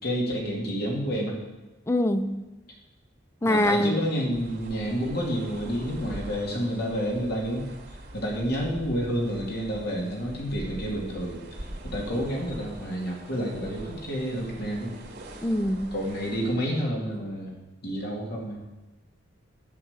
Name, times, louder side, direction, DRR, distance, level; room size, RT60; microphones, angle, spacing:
voice 1, 0.0-1.4 3.4-7.7 8.1-11.4 11.8-14.9 15.9-17.5 17.8-18.6, equal, 55° left, -2 dB, 2.7 m, -29 dB
voice 2, 1.9-2.4 3.4-4.0 15.4-15.9, left 1 dB, 15° left, 10 dB, 0.5 m, -24 dB
sound 1, 4.3-16.6, right 1 dB, 60° right, 2.6 m, -43 dB
11.0 x 6.0 x 8.3 m, 1.1 s
head